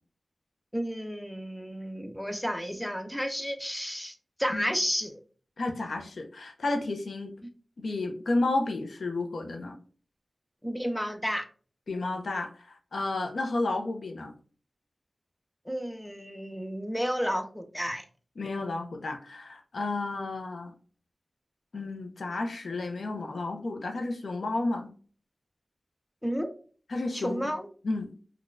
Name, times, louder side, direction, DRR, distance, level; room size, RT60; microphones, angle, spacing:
voice 1, 0.7-5.2 10.6-11.5 15.7-18.0 26.2-26.5 27.1-27.7, equal, 5° left, 7 dB, 0.4 m, -32 dB
voice 2, 5.6-7.3 7.8-9.8 11.9-14.3 18.4-20.7 21.7-24.9 26.9-27.5 27.8-28.1, left 2 dB, 85° left, 3 dB, 0.5 m, -32 dB
3.8 x 2.2 x 2.5 m, 0.41 s
wide cardioid pair, 95°, 0 cm